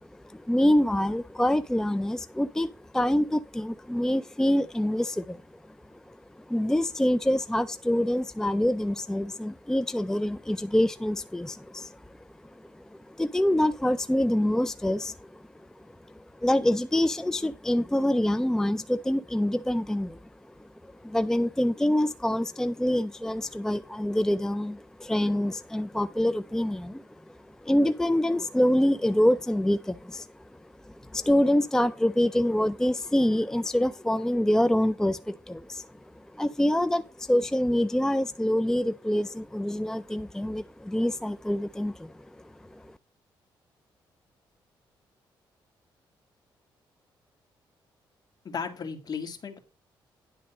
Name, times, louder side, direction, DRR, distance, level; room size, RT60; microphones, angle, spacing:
voice 1, 0.1-5.4 6.1-12.2 12.6-15.4 15.8-20.2 20.6-27.3 27.6-30.3 30.8-35.9 36.2-42.3 42.7-43.0, left 1 dB, 5° left, 0.4 m, -26 dB
voice 2, 48.4-49.6, left 6 dB, 50° left, 2.0 m, -35 dB
10.5 x 3.9 x 6.3 m
cardioid pair, 85°, 9 cm